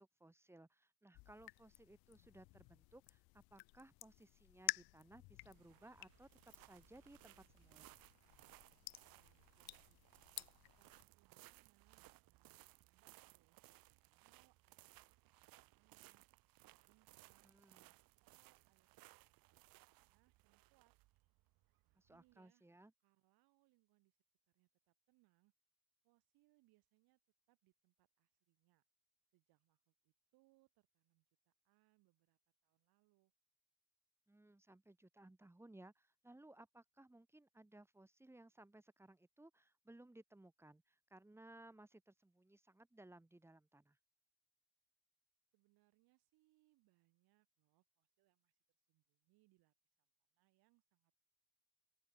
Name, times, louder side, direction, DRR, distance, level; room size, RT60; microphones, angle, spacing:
voice 1, 0.0-8.0 17.4-17.9 21.9-22.9 34.3-44.0, right 1 dB, 5° right, 0.9 m, -62 dB
sound 1, 1.1-11.0, left 23 dB, 80° left, 0.6 m, -51 dB
sound 2, 5.4-22.3, right 18 dB, 70° right, 0.8 m, -65 dB
voice 2, 9.0-10.1 10.6-15.0 15.2-16.2 16.8-17.5 18.2-21.0 21.8-22.7 23.0-24.2 24.5-25.5 26.0-27.2 27.5-28.8 29.3-33.3 45.5-48.6 48.9-51.1, right 21 dB, 85° right, 2.7 m, -79 dB
open air
cardioid pair, 110°, 36 cm